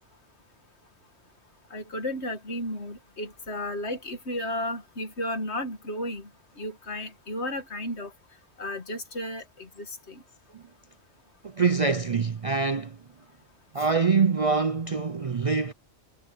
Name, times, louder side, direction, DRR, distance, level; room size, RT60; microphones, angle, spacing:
voice 1, 1.7-6.3 6.6-8.1 8.6-10.2 13.8-13.9, left 1 dB, 65° left, 2.3 m, -33 dB
voice 2, 11.4-13.0 13.7-15.7, right 5 dB, 40° right, 0.5 m, -24 dB
omnidirectional pair, 1.2 m